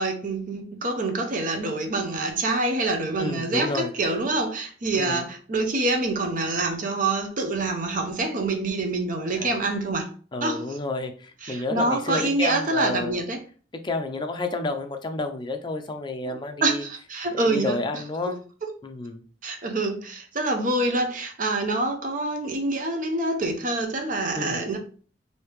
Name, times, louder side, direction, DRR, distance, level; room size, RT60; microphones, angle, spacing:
voice 1, 0.0-10.1 10.4-10.6 11.4-13.4 16.3-17.8 19.4-24.8, right 2 dB, 45° right, 0.6 m, -26 dB
voice 2, 3.2-3.9 4.9-5.3 9.3-9.6 10.3-13.2 13.8-16.8 17.3-18.4 18.8-19.2 24.3-24.8, left 2 dB, 25° left, 0.4 m, -30 dB
3.3 x 2.7 x 3.2 m
head